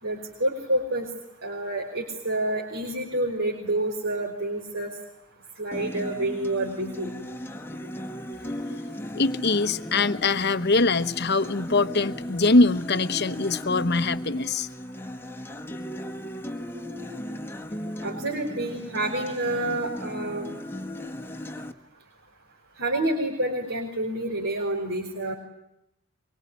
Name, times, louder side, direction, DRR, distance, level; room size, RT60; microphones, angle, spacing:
voice 1, 0.0-1.1 1.4-4.9 5.6-7.1 18.0-20.5 22.8-25.3, right 1 dB, 60° right, 5.5 m, -28 dB
Acoustic guitar, 5.7-21.7, equal, 10° left, 1.7 m, -36 dB
voice 2, 9.1-14.7, left 3 dB, 50° left, 1.1 m, -23 dB
24.5 x 24.0 x 10.0 m
head